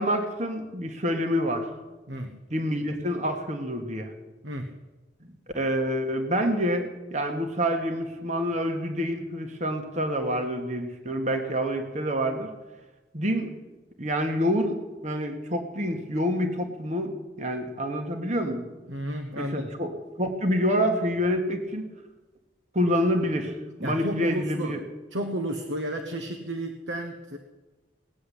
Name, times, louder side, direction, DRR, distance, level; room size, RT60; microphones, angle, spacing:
voice 1, 0.0-1.7 2.5-4.1 5.5-12.5 13.1-13.5 14.0-18.7 19.4-21.9 22.7-24.8, equal, 35° right, 5 dB, 1.6 m, -27 dB
voice 2, 18.9-19.7 23.8-24.8 25.1-27.4, right 1 dB, 70° right, 4 dB, 1.3 m, -32 dB
18.5 x 7.8 x 10.0 m, 1.2 s
head